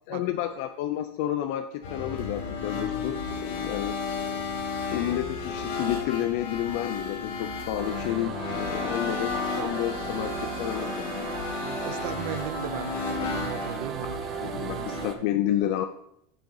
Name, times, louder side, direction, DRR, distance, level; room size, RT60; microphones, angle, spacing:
voice 1, 0.1-4.0 4.9-11.3 14.1-15.9, left 12 dB, 60° left, 9 dB, 0.4 m, -30 dB
sound 1, 1.8-15.1, left 5 dB, 75° left, 1.2 m, -33 dB
sound 2, 7.7-15.1, right 7 dB, 30° right, 0.7 m, -36 dB
voice 2, 11.6-15.1, right 12 dB, 65° right, 13 dB, 0.5 m, -38 dB
9.9 x 3.8 x 3.8 m, 0.76 s
supercardioid pair, 160°, 0 cm